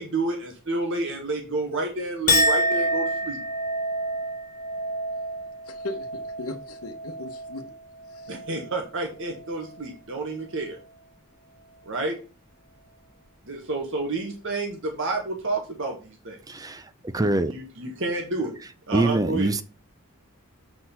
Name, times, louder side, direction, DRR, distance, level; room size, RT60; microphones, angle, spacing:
voice 1, 0.0-3.4 8.3-10.8 11.9-12.2 13.5-16.4 17.5-18.5 18.9-19.5, right 2 dB, 60° right, 1.7 m, -30 dB
Chink clink, 2.3-8.8 9.2-9.8, equal, 35° left, 1.8 m, -28 dB
voice 2, 5.7-7.6 8.1-8.3, left 2 dB, 75° left, 1.0 m, -37 dB
voice 3, 16.5-17.5 18.9-19.6, right 2 dB, 15° right, 0.6 m, -24 dB
7.8 x 4.4 x 5.6 m
head